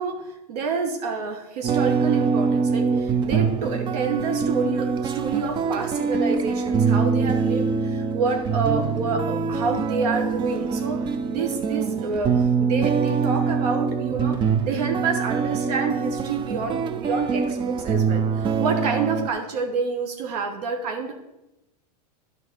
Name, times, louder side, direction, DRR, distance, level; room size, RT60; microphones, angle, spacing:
voice 1, 0.0-21.1, right 4 dB, 75° right, 4 dB, 1.4 m, -28 dB
sound 1, 1.6-19.3, right 5 dB, 25° right, 0.5 m, -24 dB
10.5 x 4.0 x 6.7 m, 0.94 s
hypercardioid pair, 125°, 20 cm